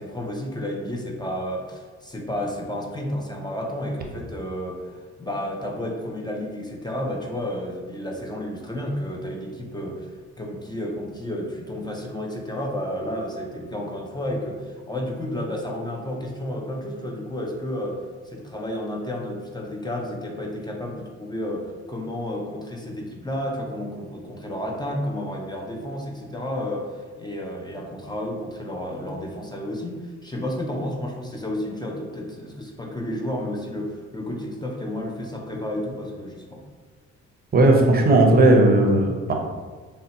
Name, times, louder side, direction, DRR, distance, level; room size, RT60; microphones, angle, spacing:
voice 1, 0.0-10.1 10.4-18.0 18.3-36.6, left 1 dB, 15° left, -1 dB, 0.4 m, -31 dB
voice 2, 37.5-39.3, right 2 dB, 30° right, 1 dB, 0.6 m, -16 dB
2.7 x 2.1 x 3.9 m, 1.4 s
cardioid pair, 90°, 30 cm